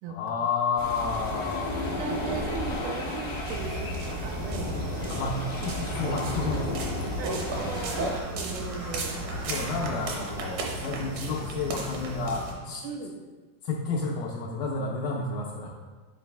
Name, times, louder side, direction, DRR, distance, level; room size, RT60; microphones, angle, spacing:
voice 1, 0.1-1.8 5.1-6.8 9.5-12.9 13.6-15.7, left 4 dB, 85° left, -2 dB, 1.9 m, -31 dB
sound 1, 0.8-8.2, left 1 dB, 55° left, 0.3 m, -33 dB
voice 2, 1.7-5.3 7.2-9.5 12.8-13.1, right 5 dB, 90° right, 2 dB, 2.7 m, -38 dB
sound 2, 3.5-12.5, right 2 dB, 70° right, 1.9 m, -34 dB
sound 3, 6.2-11.6, right 1 dB, 55° right, 0.9 m, -45 dB
10.0 x 4.0 x 3.3 m, 1.4 s
omnidirectional pair, 4.7 m